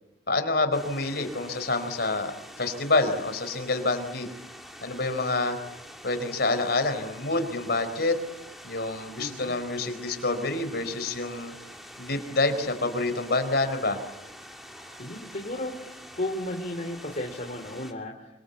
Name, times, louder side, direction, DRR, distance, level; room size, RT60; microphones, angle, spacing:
voice 1, 0.3-2.3 2.6-4.3 4.8-5.6 6.0-8.2 8.6-11.5 12.0-14.0, left 2 dB, 65° left, 8 dB, 4.5 m, -27 dB
sound 1, 0.7-17.9, equal, ahead, 2.9 m, -46 dB
voice 2, 9.2-9.6 15.0-18.3, left 1 dB, 45° left, 2 dB, 2.8 m, -34 dB
29.0 x 24.5 x 8.3 m, 1.0 s
head